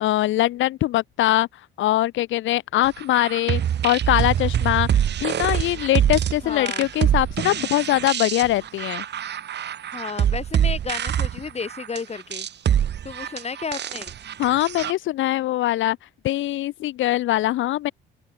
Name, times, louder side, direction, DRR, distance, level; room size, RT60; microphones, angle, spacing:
voice 1, 0.0-1.5 1.8-9.0 14.4-16.0 16.2-17.9, left 15 dB, 80° left, 0.7 m, -22 dB
sound 1, 3.0-14.9, right 9 dB, 60° right, 1.8 m, -25 dB
voice 2, 6.4-6.9 9.9-12.5 13.0-14.1, left 5 dB, 30° left, 2.5 m, -32 dB
open air
cardioid pair, 90°, 20 cm